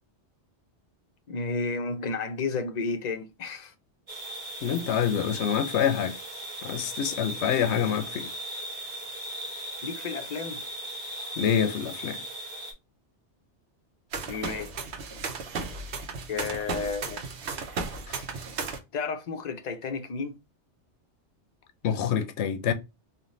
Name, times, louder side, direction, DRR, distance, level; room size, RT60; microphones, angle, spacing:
voice 1, 1.3-3.7 9.8-10.6 14.3-14.7 15.5-15.6 16.3-17.2 18.9-20.4, left 4 dB, 50° left, 0.5 m, -32 dB
sound 1, 4.1-12.7, right 1 dB, 45° right, 1.0 m, -38 dB
voice 2, 4.6-6.2 6.6-8.3 11.4-12.2 18.1-18.2 21.8-22.7, left 8 dB, 80° left, 0.9 m, -26 dB
sound 2, 14.1-18.8, right 4 dB, 70° right, 1.0 m, -35 dB
3.2 x 2.5 x 2.5 m
omnidirectional pair, 1.2 m